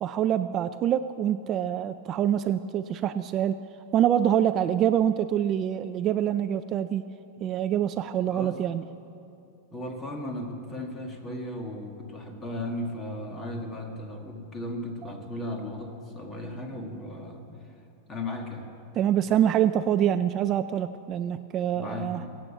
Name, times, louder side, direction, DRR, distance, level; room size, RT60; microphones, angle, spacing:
voice 1, 0.0-3.6 3.9-7.0 7.4-8.8 19.0-22.2, right 10 dB, 30° right, 11 dB, 0.3 m, -25 dB
voice 2, 8.3-8.6 9.7-17.5 18.1-18.7 21.7-22.3, left 1 dB, 20° left, 3 dB, 1.7 m, -36 dB
22.5 x 8.5 x 7.1 m, 2.7 s
supercardioid pair, 155°, 0 cm